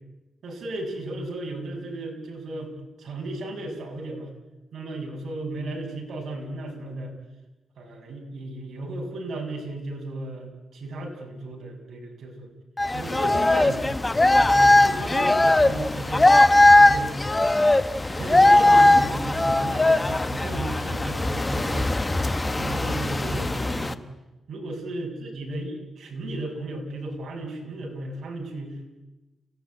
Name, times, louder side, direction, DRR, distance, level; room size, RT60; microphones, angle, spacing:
voice 1, 0.4-2.7 3.0-4.3 4.7-7.1 7.8-12.5 12.9-13.9 14.3-16.3 16.8-17.2 18.2-21.9 22.6-24.0 24.5-28.9, right 2 dB, 70° right, 1 dB, 7.1 m, -34 dB
sound 1, 12.8-23.9, left 2 dB, 20° left, 1.2 m, -19 dB
30.0 x 17.5 x 9.6 m, 1.1 s
wide cardioid pair, 115°, 0 cm